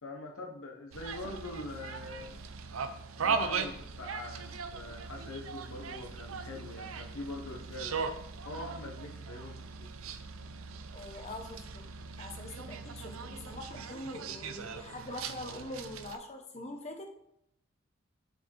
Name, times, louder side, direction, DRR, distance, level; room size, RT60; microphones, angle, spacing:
voice 1, 0.0-2.5 3.2-8.0 8.4-9.9, left 2 dB, 90° left, 0 dB, 1.1 m, -43 dB
sound 1, 0.9-16.2, right 5 dB, 85° right, 0.7 m, -39 dB
voice 2, 10.9-11.9 12.2-17.1, left 1 dB, 35° left, 4 dB, 1.0 m, -43 dB
6.8 x 4.7 x 4.6 m, 0.76 s
head